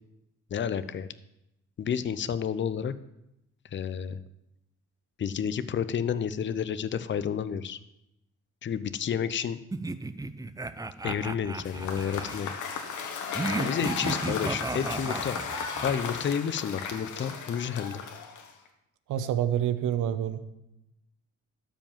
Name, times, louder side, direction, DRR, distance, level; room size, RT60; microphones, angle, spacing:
voice 1, 0.5-1.1 1.8-2.9 3.7-4.2 5.2-7.8 8.6-9.6 11.0-12.5 13.6-18.0, left 8 dB, 40° left, 14 dB, 0.7 m, -30 dB
sound 1, 9.7-12.4 13.3-15.9, right 3 dB, 10° right, 0.5 m, -34 dB
Cheering / Applause / Crowd, 11.6-18.7, left 6 dB, 80° left, 1.6 m, -35 dB
voice 2, 19.1-20.4, right 10 dB, 80° right, 11 dB, 1.0 m, -27 dB
12.5 x 5.2 x 7.3 m, 0.87 s
cardioid pair, 90°, 30 cm